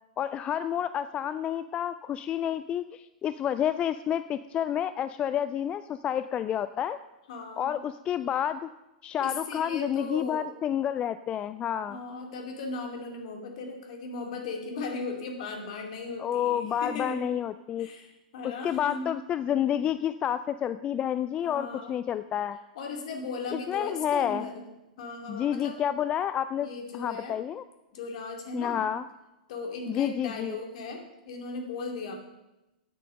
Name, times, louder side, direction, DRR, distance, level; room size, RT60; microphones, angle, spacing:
voice 1, 0.2-7.0 7.6-8.7 9.0-12.0 16.2-17.9 18.4-22.6 23.5-24.4 25.3-26.7 26.9-27.6 28.5-29.0 29.9-30.6, left 10 dB, 25° left, 13 dB, 0.3 m, -29 dB
voice 2, 7.3-7.8 9.2-10.5 11.9-17.3 17.8-19.1 21.4-21.9 22.8-24.6 25.0-25.8 26.6-27.4 27.9-28.8 29.5-32.2, left 3 dB, 55° left, 3 dB, 2.3 m, -37 dB
9.4 x 8.5 x 6.2 m, 0.99 s
figure-of-eight pair, 95°, 4 cm